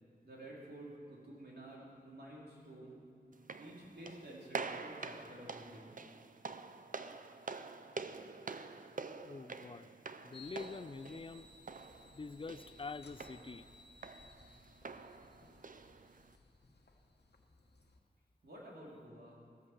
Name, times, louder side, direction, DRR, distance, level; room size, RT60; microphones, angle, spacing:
voice 1, 0.2-3.0 3.6-5.9 18.4-19.4, right 1 dB, 75° right, -4 dB, 3.2 m, -51 dB
sound 1, 3.3-16.4, right 4 dB, 55° right, 0.6 m, -47 dB
voice 2, 9.2-9.9 10.2-11.5 12.1-13.7, left 4 dB, 30° left, 15 dB, 0.4 m, -46 dB
sound 2, 10.3-18.0, left 3 dB, 85° left, 1.2 m, -60 dB
14.0 x 8.5 x 7.1 m, 2.5 s
wide cardioid pair, 75°, 17 cm